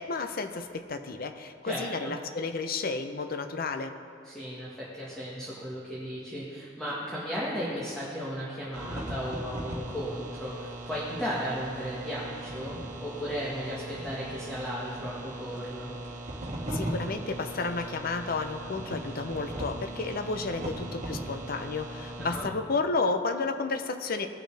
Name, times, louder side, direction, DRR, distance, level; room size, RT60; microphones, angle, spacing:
voice 1, 0.0-3.9 16.7-24.3, left 3 dB, 55° left, 7 dB, 0.7 m, -32 dB
voice 2, 1.6-2.1 4.2-12.8 13.0-15.9 22.2-22.5, equal, 5° left, -8 dB, 1.5 m, -35 dB
sound 1, 8.7-22.4, right 1 dB, 40° right, 1.4 m, -38 dB
18.5 x 6.4 x 3.4 m, 2.4 s
head